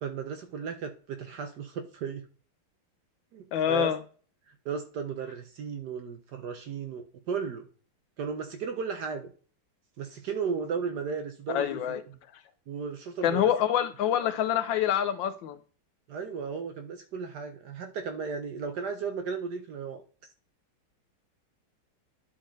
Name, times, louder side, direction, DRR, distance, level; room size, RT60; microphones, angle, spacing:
voice 1, 0.0-2.3 3.3-3.9 4.6-7.7 8.2-9.3 10.0-11.7 12.7-13.5 16.1-20.0, right 6 dB, 65° right, 1.1 m, -35 dB
voice 2, 3.5-4.0 11.5-12.0 13.2-15.6, left 10 dB, 75° left, 1.2 m, -26 dB
10.5 x 4.1 x 3.9 m
omnidirectional pair, 2.3 m